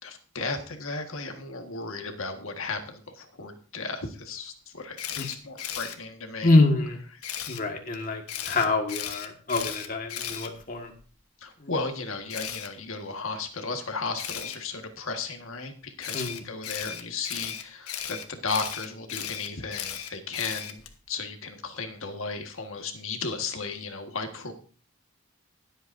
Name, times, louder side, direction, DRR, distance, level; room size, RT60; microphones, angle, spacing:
voice 1, 0.0-6.6 11.4-20.8 21.1-24.5, left 4 dB, 65° left, 5 dB, 1.6 m, -35 dB
Camera, 5.0-5.9 7.2-7.6 8.3-11.0 12.3-12.7 14.2-14.6 16.0-21.0, left 9 dB, 80° left, 1.3 m, -36 dB
voice 2, 6.4-7.0 7.5-10.9 11.6-11.7 16.1-16.4, left 2 dB, 35° left, 3 dB, 1.7 m, -25 dB
21.5 x 8.1 x 2.7 m, 0.40 s
head